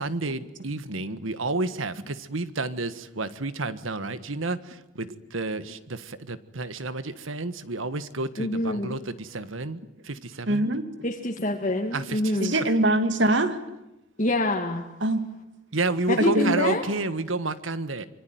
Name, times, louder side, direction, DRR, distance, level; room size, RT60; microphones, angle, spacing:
voice 1, 0.0-10.7 11.9-12.4 15.7-18.1, right 2 dB, 80° right, 13 dB, 1.6 m, -30 dB
voice 2, 8.4-9.0 11.0-12.5 14.2-14.8 16.1-16.8, left 1 dB, 40° left, 1 dB, 2.1 m, -26 dB
voice 3, 10.5-10.8 12.4-13.6 15.0-15.3 16.2-16.6, right 1 dB, 60° right, 9 dB, 2.4 m, -23 dB
26.0 x 24.0 x 9.4 m, 0.89 s
head